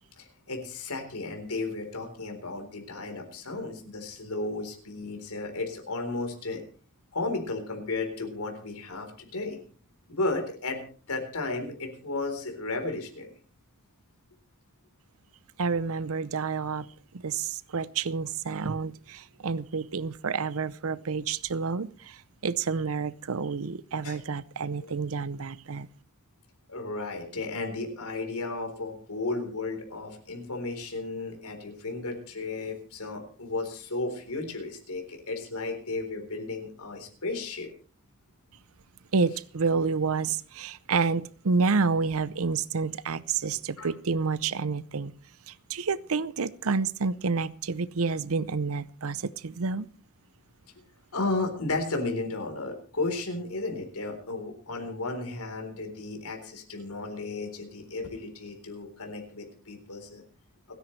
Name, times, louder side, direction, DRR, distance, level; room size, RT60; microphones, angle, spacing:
voice 1, 0.2-6.6 7.1-9.6 10.1-10.8 11.1-13.3 24.0-24.2 24.8-24.9 26.7-37.7 43.8-43.9 51.1-60.2, left 3 dB, 80° left, 4 dB, 4.0 m, -34 dB
voice 2, 15.6-16.9 17.1-25.9 39.1-45.1 45.5-49.9, right 4 dB, 65° right, 17 dB, 0.7 m, -29 dB
29.5 x 10.5 x 3.3 m, 0.42 s
head